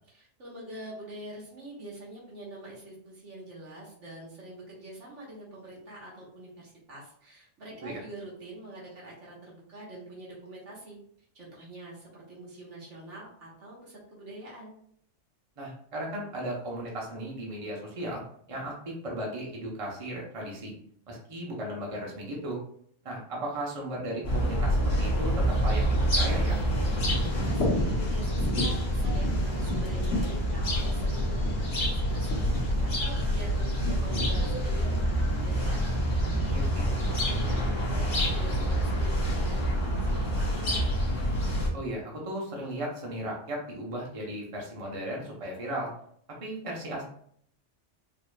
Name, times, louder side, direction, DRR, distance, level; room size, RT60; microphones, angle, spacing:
voice 1, 0.1-11.0 11.3-14.8 26.8-32.5 32.8-40.9, right 1 dB, 75° right, -4 dB, 1.6 m, -45 dB
voice 2, 15.6-18.2 18.5-20.7 21.1-22.6 23.0-26.6 36.5-36.8 41.7-45.9 46.4-47.1, right 1 dB, 30° right, -2 dB, 0.9 m, -36 dB
sound 1, 24.2-41.7, equal, 45° left, 1.2 m, -27 dB
Bird vocalization bird call bird song, 27.1-37.6, left 1 dB, 70° left, 1.4 m, -36 dB
4.8 x 2.9 x 2.3 m, 0.65 s
omnidirectional pair, 1.2 m